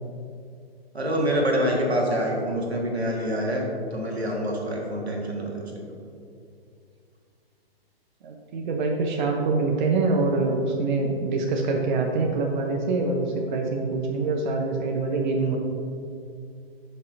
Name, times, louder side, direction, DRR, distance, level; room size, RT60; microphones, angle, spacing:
voice 1, 0.9-5.6 15.4-15.6, equal, 90° right, -1 dB, 1.7 m, -26 dB
voice 2, 8.2-15.6, right 3 dB, 50° right, 1 dB, 0.8 m, -25 dB
11.0 x 5.5 x 2.7 m, 2.4 s
figure-of-eight pair, 130°, 31 cm